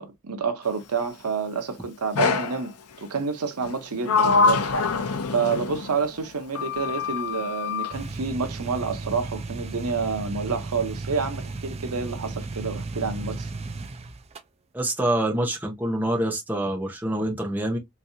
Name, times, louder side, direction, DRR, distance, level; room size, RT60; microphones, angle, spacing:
voice 1, 0.0-2.7 3.0-4.6 4.9-13.5, right 5 dB, 85° right, 0.7 m, -29 dB
Sliding door, 2.2-2.6 3.6-6.1 6.6-8.0, left 4 dB, 75° left, 0.6 m, -24 dB
sound 1, 7.9-14.4, right 3 dB, 30° right, 0.4 m, -35 dB
voice 2, 14.7-17.8, right 1 dB, 10° right, 1.0 m, -26 dB
3.5 x 3.0 x 2.6 m
head